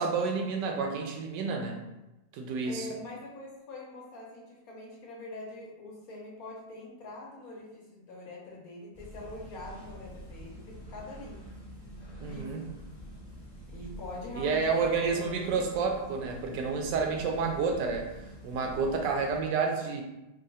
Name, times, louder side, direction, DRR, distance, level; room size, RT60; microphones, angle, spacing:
voice 1, 0.0-1.8 2.3-2.9 12.2-12.6 14.4-18.0 18.4-20.0, right 4 dB, 80° right, 2 dB, 1.2 m, -29 dB
voice 2, 2.7-11.4 12.2-12.6 13.7-15.6 17.4-17.6, left 2 dB, 60° left, -3 dB, 1.1 m, -44 dB
sound 1, 8.9-19.4, equal, 20° left, 0.8 m, -46 dB
3.7 x 2.0 x 3.9 m, 0.98 s
omnidirectional pair, 1.9 m